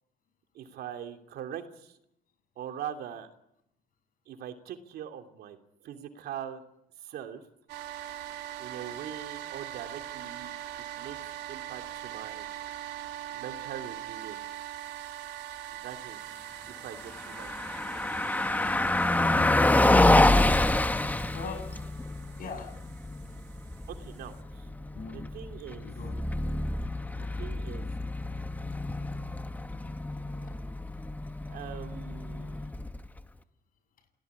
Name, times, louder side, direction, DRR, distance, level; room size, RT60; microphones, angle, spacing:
voice 1, 0.5-2.0 2.6-3.3 4.3-5.6 5.8-6.6 7.0-7.5 8.6-10.5 10.8-11.2 11.5-12.8 13.3-14.4 15.7-16.2 16.7-17.5 23.9-24.7 25.1-25.9 27.2-27.9 31.5-32.7, right 9 dB, 70° right, 6 dB, 3.0 m, -42 dB
sound 1, 7.7-24.4, right 12 dB, 85° right, 3.1 m, -42 dB
Car passing by, 17.1-33.2, left 2 dB, 10° left, 1.4 m, -27 dB
voice 2, 21.3-21.8 22.3-23.4 24.9-25.2 25.7-26.2 27.2-27.4 30.4-30.5, left 4 dB, 55° left, 8 dB, 7.4 m, -43 dB
28.0 x 18.0 x 9.7 m, 0.81 s
cardioid pair, 110°, 17 cm